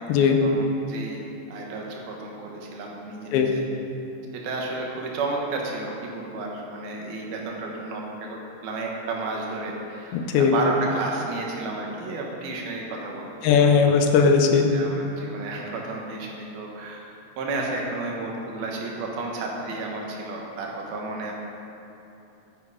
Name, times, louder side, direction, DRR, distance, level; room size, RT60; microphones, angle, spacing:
voice 1, 0.2-1.2 1.5-3.6 4.3-13.3 14.7-17.0 17.4-21.3, right 3 dB, 80° right, -1 dB, 3.2 m, -32 dB
voice 2, 10.1-10.5 13.4-14.7, left 6 dB, 90° left, 4 dB, 2.8 m, -18 dB
11.5 x 9.7 x 4.9 m, 2.8 s
omnidirectional pair, 4.2 m